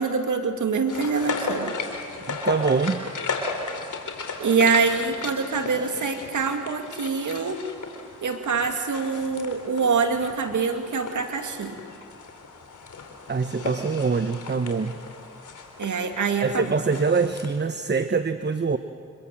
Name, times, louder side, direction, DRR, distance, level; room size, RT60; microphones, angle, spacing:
voice 1, 0.0-1.7 4.4-7.6 8.2-11.8 15.8-16.8, right 5 dB, 70° right, 5 dB, 2.5 m, -25 dB
sound 1, 0.9-17.5, left 4 dB, 70° left, 3.7 m, -35 dB
voice 2, 2.3-3.1 13.3-15.0 16.4-18.8, right 4 dB, 35° right, 10 dB, 1.2 m, -24 dB
27.5 x 21.5 x 7.7 m, 2.2 s
supercardioid pair, 40°, 32 cm